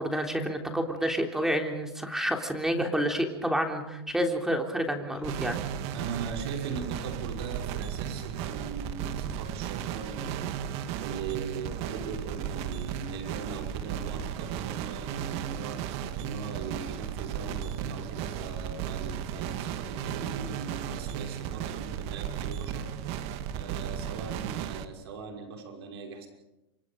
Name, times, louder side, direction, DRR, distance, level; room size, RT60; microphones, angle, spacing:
voice 1, 0.0-5.6, equal, 5° right, 3 dB, 3.5 m, -29 dB
sound 1, 5.2-24.8, right 9 dB, 50° right, 1.9 m, -35 dB
voice 2, 5.9-26.3, right 5 dB, 75° right, 3 dB, 6.0 m, -40 dB
29.0 x 24.5 x 5.3 m, 0.98 s
hypercardioid pair, 125°, 14 cm